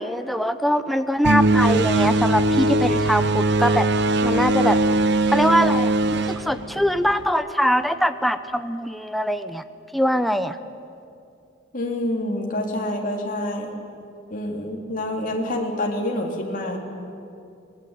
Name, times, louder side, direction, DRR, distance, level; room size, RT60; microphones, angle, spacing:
voice 1, 0.0-3.9 4.2-4.8 5.3-9.6 9.9-10.6, equal, ahead, 9 dB, 0.8 m, -22 dB
sound 1, 1.2-7.3, right 2 dB, 60° right, 1.0 m, -20 dB
voice 2, 11.7-13.7 14.3-16.8, left 1 dB, 45° left, 0 dB, 3.8 m, -27 dB
26.0 x 20.5 x 9.3 m, 2.5 s
head